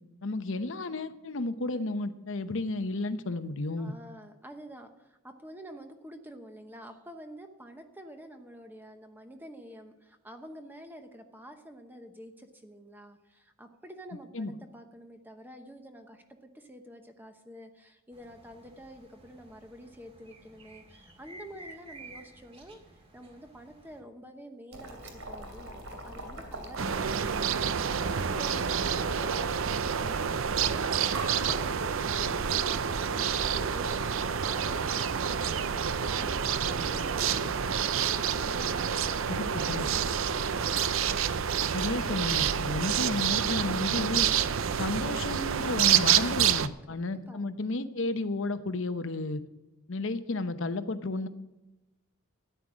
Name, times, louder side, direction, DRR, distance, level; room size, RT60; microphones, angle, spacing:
voice 1, 0.2-3.9 14.3-14.5 39.3-39.8 41.7-44.3 44.8-49.4 49.9-51.3, left 2 dB, 60° left, 11 dB, 0.9 m, -32 dB
voice 2, 3.8-40.4 46.9-47.0 47.3-47.4, equal, 10° right, 5 dB, 0.9 m, -48 dB
sound 1, 18.1-24.0, right 2 dB, 25° right, 2.0 m, -52 dB
Boiling, 24.7-40.8, right 1 dB, 85° right, 2.8 m, -42 dB
sound 2, 26.8-46.7, right 8 dB, 65° right, 0.6 m, -28 dB
13.5 x 10.0 x 6.2 m, 1.0 s
head